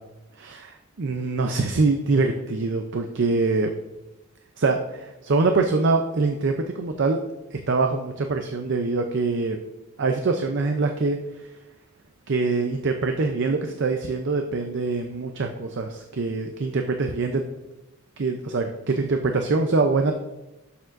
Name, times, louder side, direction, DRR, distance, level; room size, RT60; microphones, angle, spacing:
voice 1, 0.4-3.7 4.6-7.2 7.5-9.6 10.0-11.5 12.3-17.5 18.2-20.1, right 3 dB, 60° right, 5 dB, 0.6 m, -24 dB
12.0 x 7.0 x 2.6 m, 1.0 s
head